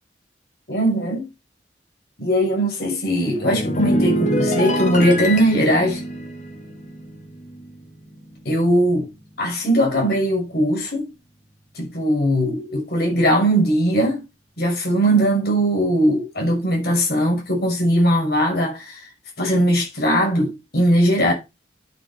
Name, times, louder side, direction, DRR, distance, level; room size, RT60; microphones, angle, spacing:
voice 1, 0.7-1.3 2.2-6.0 8.4-9.1 9.4-11.1 11.7-14.2 14.6-19.0 19.4-21.3, equal, 60° left, 6.2 m, -19 dB
sound 1, 3.2-7.8 8.1-8.4, equal, 40° left, 2.4 m, -24 dB
11.5 x 6.9 x 4.4 m
head